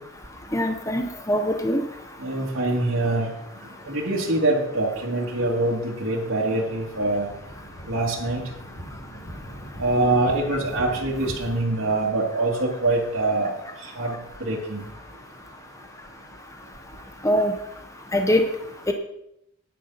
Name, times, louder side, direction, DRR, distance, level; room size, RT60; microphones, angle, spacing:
voice 1, 0.5-1.0 1.3-1.8 17.2-17.5 18.1-18.4 18.9-19.0, left 1 dB, 15° left, 5 dB, 0.9 m, -21 dB
voice 2, 2.2-3.3 3.8-7.3 7.9-8.4 9.8-13.5 14.0-14.8, right 2 dB, 70° right, -5 dB, 2.4 m, -24 dB
sound 1, 6.6-11.4, equal, 70° left, 4.0 m, -41 dB
9.9 x 9.3 x 5.7 m, 0.81 s
head